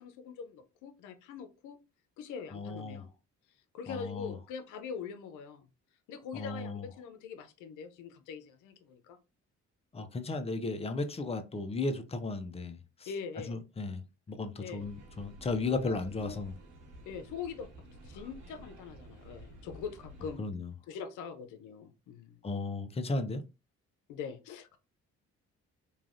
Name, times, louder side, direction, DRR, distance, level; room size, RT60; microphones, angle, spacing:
voice 1, 0.0-1.8 2.2-3.1 3.7-5.7 6.1-9.2 13.1-13.6 14.6-14.9 15.7-16.4 17.1-17.7 18.0-20.4 20.9-22.4 24.1-24.8, left 6 dB, 85° left, 0.6 m, -43 dB
voice 2, 2.5-3.0 3.9-4.3 6.3-6.8 9.9-12.8 13.5-14.0 14.3-16.5 20.4-20.7 22.4-23.4, left 3 dB, 20° left, 0.5 m, -35 dB
sound 1, 14.8-20.4, right 1 dB, 80° right, 1.2 m, -52 dB
3.2 x 2.3 x 2.5 m
cardioid pair, 90°, 30 cm